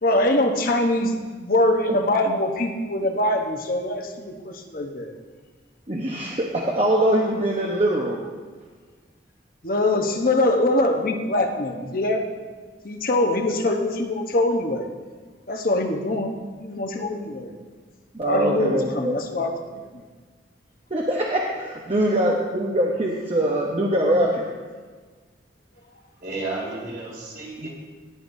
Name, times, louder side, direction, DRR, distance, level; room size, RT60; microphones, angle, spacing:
voice 1, 0.0-5.1 9.6-12.2 12.8-14.9 15.5-17.5 18.2-20.0, left 1 dB, 50° left, 3 dB, 1.0 m, -23 dB
voice 2, 5.9-8.2 18.1-19.2 20.9-24.4 27.6-27.7, right 1 dB, 35° right, -2 dB, 1.0 m, -23 dB
voice 3, 26.2-27.7, right 2 dB, 60° right, -5 dB, 3.9 m, -32 dB
17.5 x 9.6 x 2.7 m, 1.5 s
head